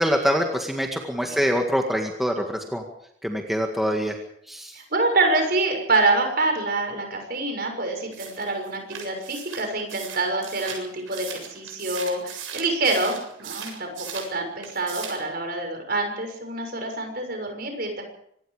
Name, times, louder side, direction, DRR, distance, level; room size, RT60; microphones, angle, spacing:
voice 1, 0.0-2.8 3.2-4.1 4.5-4.7, equal, ahead, 1 dB, 1.9 m, -24 dB
voice 2, 4.7-18.0, right 2 dB, 50° right, 4 dB, 6.5 m, -26 dB
sound 1, 8.1-14.3 14.6-15.3, right 7 dB, 85° right, 7.3 m, -38 dB
26.0 x 20.0 x 5.1 m, 0.69 s
head